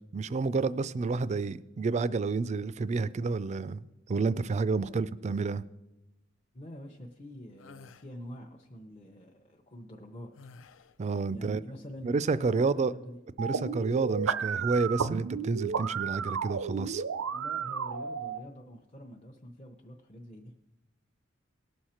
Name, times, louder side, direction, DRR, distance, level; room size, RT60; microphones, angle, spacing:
voice 1, 0.1-5.6 11.0-11.6 12.0-12.9 13.4-17.0, right 4 dB, 35° right, 17 dB, 0.3 m, -30 dB
voice 2, 6.5-10.5 11.3-13.2 17.3-20.5, equal, 30° left, 0 dB, 0.7 m, -46 dB
sound 1, 7.6-8.1 10.4-11.0, left 4 dB, 75° left, 0.5 m, -51 dB
sound 2, 13.4-18.4, right 6 dB, 85° right, 0.5 m, -33 dB
19.0 x 6.4 x 4.3 m, 0.99 s
head